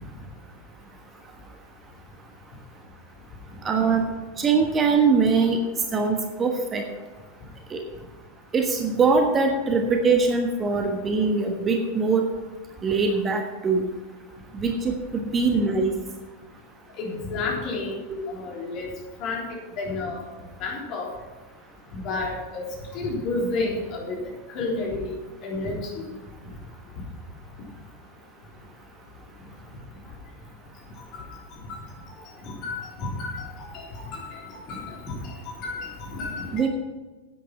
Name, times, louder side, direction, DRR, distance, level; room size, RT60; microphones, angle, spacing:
voice 1, 3.6-4.0 4.4-5.6 5.9-6.8 7.7-7.8 8.5-12.2 12.8-13.8 14.5-15.9 18.1-18.2 36.5-36.7, right 4 dB, 20° right, 4 dB, 1.3 m, -22 dB
voice 2, 17.0-18.0 18.3-18.9 19.2-19.4 19.8-20.2 20.6-21.1 21.9-22.6 22.9-24.2 24.5-25.1 25.4-26.1 31.1-31.3 31.7-31.8 32.6-33.8 34.1-35.3 35.6-36.7, left 3 dB, 40° left, -2 dB, 3.6 m, -31 dB
10.5 x 9.2 x 5.8 m, 1.2 s
figure-of-eight pair, 90°, 0 cm